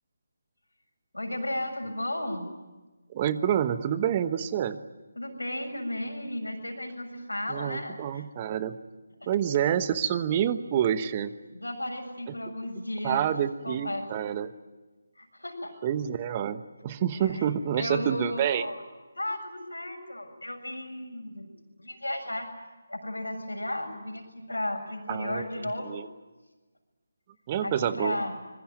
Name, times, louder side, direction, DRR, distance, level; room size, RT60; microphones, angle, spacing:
voice 1, 1.1-2.5 5.2-8.2 11.5-13.3 13.6-14.1 15.2-15.7 17.2-17.5 17.7-18.8 19.1-21.5 21.8-22.5 22.9-26.0 27.6-28.3, left 1 dB, 85° left, 4 dB, 7.2 m, -34 dB
voice 2, 3.1-4.8 7.5-8.8 9.3-11.3 13.0-14.5 15.8-18.6 25.1-25.4 25.9-26.1 27.5-28.2, right 9 dB, 25° right, 13 dB, 1.1 m, -28 dB
26.0 x 22.5 x 9.0 m, 1.2 s
figure-of-eight pair, 155°, 0 cm